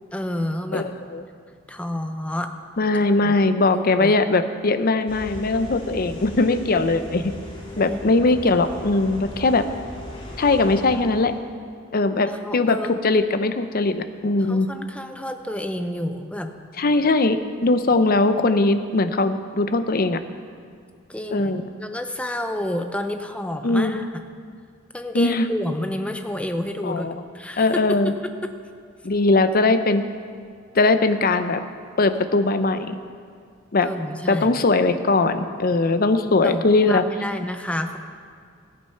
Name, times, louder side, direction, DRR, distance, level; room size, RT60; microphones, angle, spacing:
voice 1, 0.1-0.9 1.7-2.5 3.2-3.3 3.7-4.2 7.7-8.3 12.3-12.9 14.5-16.5 21.1-24.1 24.9-27.1 27.3-28.5 33.8-34.5 36.3-38.0, left 1 dB, 5° left, 6 dB, 0.7 m, -30 dB
voice 2, 0.7-1.2 2.8-7.3 7.8-9.6 10.4-11.3 11.9-14.7 16.8-17.4 17.6-20.2 21.3-21.7 23.6-24.0 25.1-25.5 26.8-27.1 27.6-28.1 29.0-30.0 30.7-31.6 32.0-33.0 33.7-33.9 34.3-37.0, left 3 dB, 50° left, 10 dB, 0.6 m, -20 dB
sound 1, 5.1-11.4, left 1 dB, 30° left, 2.4 m, -38 dB
15.0 x 8.8 x 5.7 m, 2.2 s
head